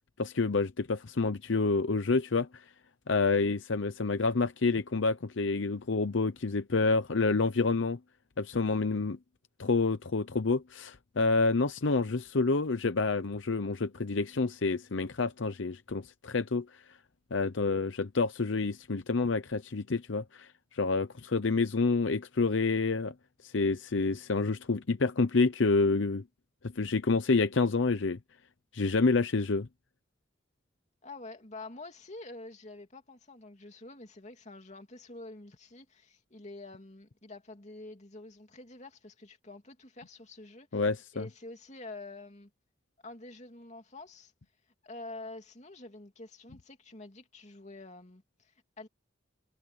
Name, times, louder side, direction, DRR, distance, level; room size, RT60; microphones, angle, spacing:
voice 1, 0.2-2.6 3.1-8.0 8.4-9.2 9.6-16.7 17.3-23.1 23.4-26.2 26.6-28.2 28.7-29.7 40.7-41.3, left 3 dB, 75° left, 0.8 m, -28 dB
voice 2, 31.0-40.8 41.1-42.5 43.0-44.3 44.8-48.9, left 2 dB, 35° left, 2.8 m, -47 dB
head